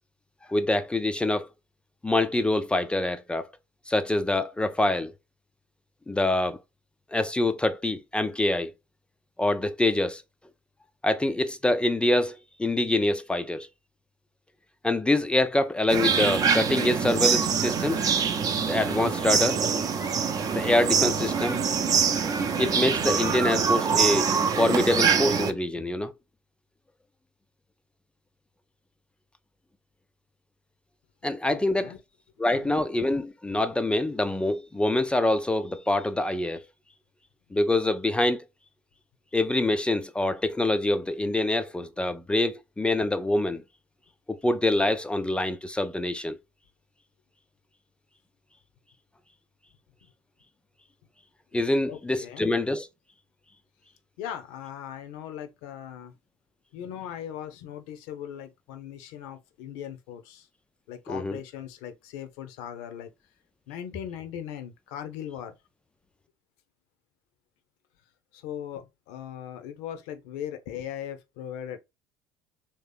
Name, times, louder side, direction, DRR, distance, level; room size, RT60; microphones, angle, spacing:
voice 1, 0.5-1.5 2.0-3.5 3.9-5.1 6.1-6.6 7.1-8.7 9.4-10.2 11.0-13.7 14.8-18.1 18.7-19.6 20.5-21.6 22.6-24.3 24.6-26.1 31.2-31.9 32.4-36.6 37.5-38.5 39.3-43.6 44.3-46.4 51.5-52.9 61.1-61.4, left 2 dB, 10° left, 0.4 m, -25 dB
sound 1, 15.9-25.5, right 6 dB, 40° right, 0.7 m, -24 dB
voice 2, 31.5-32.0 32.5-32.7 51.9-52.5 54.2-56.1 56.7-60.5 60.9-63.1 63.7-65.5 68.3-71.8, left 10 dB, 70° left, 0.7 m, -39 dB
3.2 x 2.9 x 3.3 m
hypercardioid pair, 65°, 10 cm